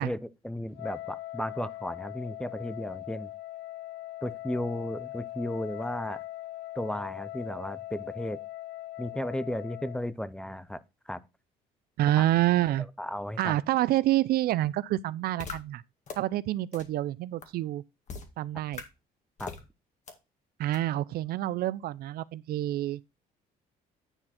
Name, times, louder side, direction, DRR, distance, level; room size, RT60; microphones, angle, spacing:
voice 1, 0.0-3.3 4.2-6.2 6.8-8.4 9.0-11.2 13.0-13.6 19.4-19.5, left 1 dB, 5° left, 0.5 m, -34 dB
Wind instrument woodwind instrument, 0.7-10.1, left 15 dB, 75° left, 0.4 m, -41 dB
voice 2, 12.0-12.9 13.4-15.8 16.2-17.8 18.4-18.8 20.6-23.0, right 14 dB, 65° right, 0.4 m, -27 dB
sound 1, 15.4-15.5 16.1-16.2 16.7-16.8 17.4-17.5 18.1-18.2 18.7-18.8 19.4-19.6 20.1-20.2 20.7-20.8, left 5 dB, 45° left, 1.8 m, -39 dB
9.9 x 4.3 x 4.2 m
cardioid pair, 110°, 17 cm